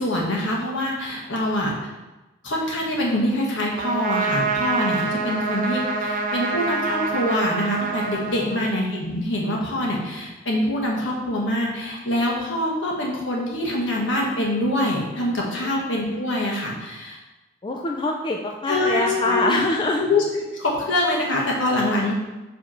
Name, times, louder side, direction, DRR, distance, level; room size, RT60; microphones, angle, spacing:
voice 1, 0.0-1.8 2.4-17.2 18.7-19.6 20.0-22.1, left 1 dB, 70° left, -2 dB, 1.5 m, -24 dB
Trumpet, 3.8-9.0, right 3 dB, 45° right, 0.5 m, -26 dB
voice 2, 17.6-20.0, left 2 dB, 25° left, 1 dB, 0.4 m, -25 dB
5.2 x 3.5 x 5.7 m, 1.1 s
head